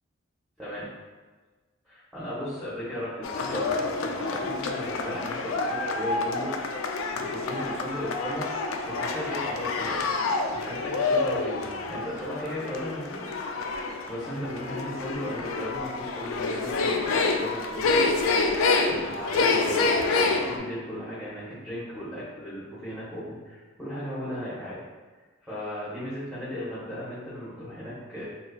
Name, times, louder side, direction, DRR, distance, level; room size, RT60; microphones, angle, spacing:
voice 1, 1.8-6.5 7.1-13.2 13.7-24.8 25.4-28.2, equal, ahead, -11 dB, 0.8 m, -36 dB
sound 1, 3.2-20.6, left 3 dB, 85° left, 0.3 m, -28 dB
3.9 x 2.8 x 2.2 m, 1.3 s
head